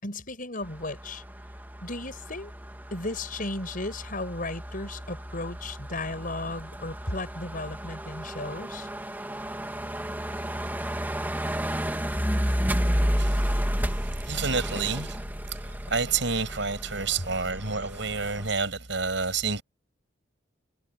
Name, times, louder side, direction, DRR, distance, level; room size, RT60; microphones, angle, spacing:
voice 1, 0.0-1.2 1.8-2.5 2.9-8.9 17.2-17.3, left 2 dB, 45° left, 6.6 m, -35 dB
sound 1, 0.6-18.5, equal, 10° right, 2.6 m, -32 dB
voice 2, 13.2-13.5 14.2-15.2 15.6-19.6, right 4 dB, 70° right, 6.8 m, -29 dB
head